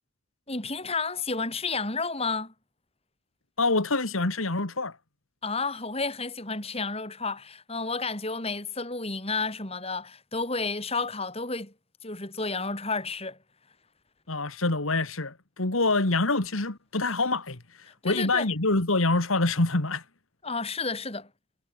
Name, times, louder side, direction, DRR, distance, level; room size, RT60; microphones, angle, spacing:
voice 1, 0.5-2.5 5.4-11.7 12.0-13.4 18.0-18.5 20.4-21.3, left 3 dB, 30° left, 5.0 m, -31 dB
voice 2, 3.6-5.0 14.3-20.0, left 2 dB, 75° left, 2.3 m, -26 dB
head